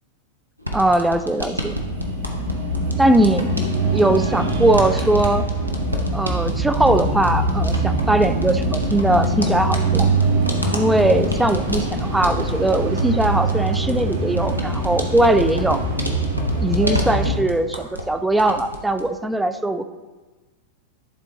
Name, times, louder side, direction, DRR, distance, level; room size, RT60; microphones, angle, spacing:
sound 1, 0.6-18.1 18.4-19.1, equal, 85° right, 0.6 m, -30 dB
voice 1, 0.7-1.8 3.0-3.5 3.9-5.4 6.1-10.1 10.7-15.8 16.6-19.9, right 2 dB, 5° right, 9 dB, 0.3 m, -20 dB
sound 2, 1.7-17.4, right 1 dB, 70° right, 1.3 m, -23 dB
11.0 x 3.7 x 2.7 m, 1.2 s
figure-of-eight pair, 90°, 0 cm